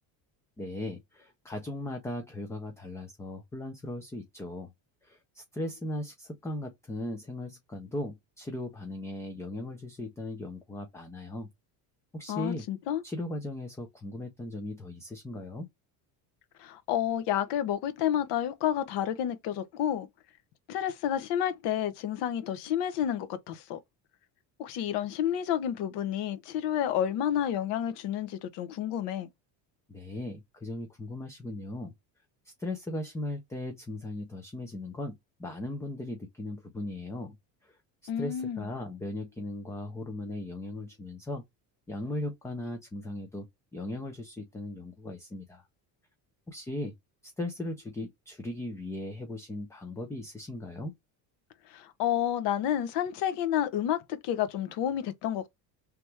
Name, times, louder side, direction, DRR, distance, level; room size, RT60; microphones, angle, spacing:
voice 1, 0.6-4.7 5.0-11.5 12.1-12.7 13.0-15.7 29.9-31.9 32.6-37.4 37.6-37.8 38.2-41.4 41.9-43.5 43.7-45.7 46.5-46.9 47.2-50.9, left 1 dB, 5° left, 0.3 m, -38 dB
voice 2, 12.3-13.0 16.6-20.1 20.7-23.8 24.6-29.3 38.1-38.6 51.7-55.5, left 10 dB, 65° left, 0.9 m, -30 dB
3.4 x 2.9 x 3.2 m
cardioid pair, 160°, 44 cm